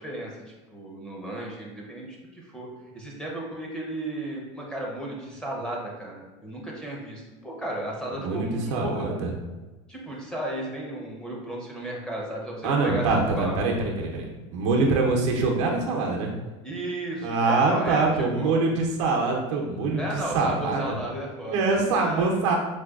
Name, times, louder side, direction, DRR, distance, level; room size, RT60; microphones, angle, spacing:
voice 1, 0.0-2.1 2.3-2.7 2.9-9.1 9.9-13.1 13.4-13.6 16.6-18.1 18.3-18.6 20.0-21.7 21.9-22.3, right 1 dB, 5° left, -3 dB, 0.7 m, -34 dB
voice 2, 8.1-9.3 12.6-14.3 14.5-16.3 17.2-20.9 21.5-22.6, right 3 dB, 85° right, 0 dB, 0.7 m, -24 dB
4.8 x 2.3 x 2.3 m, 1.2 s
supercardioid pair, 135°, 15 cm